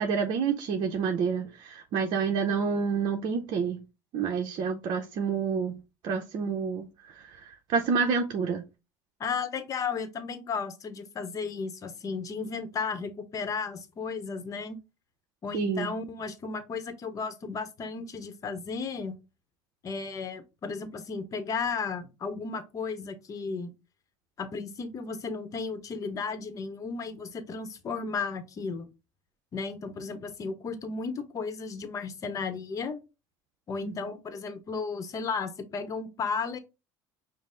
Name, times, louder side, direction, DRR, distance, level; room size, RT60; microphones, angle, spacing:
voice 1, 0.0-3.8 4.1-5.8 6.0-8.6 15.5-15.9 33.8-34.0, right 6 dB, 55° right, 0.6 m, -28 dB
voice 2, 9.2-14.8 15.4-19.2 19.8-23.7 24.4-28.9 29.5-33.0 33.7-36.6, left 5 dB, 35° left, 0.8 m, -34 dB
5.3 x 2.0 x 3.7 m
supercardioid pair, 105°, 9 cm